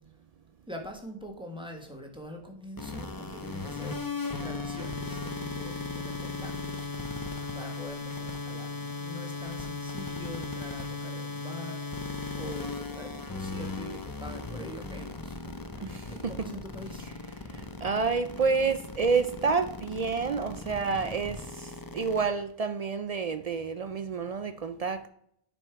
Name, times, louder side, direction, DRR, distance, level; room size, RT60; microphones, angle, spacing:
voice 1, 0.7-6.9 7.5-15.6 16.1-17.1, equal, 5° right, 1.4 m, -44 dB
sound 1, 2.8-22.3, left 3 dB, 25° left, 0.7 m, -37 dB
voice 2, 17.5-25.1, right 5 dB, 55° right, 0.4 m, -29 dB
9.7 x 5.2 x 4.6 m
omnidirectional pair, 1.1 m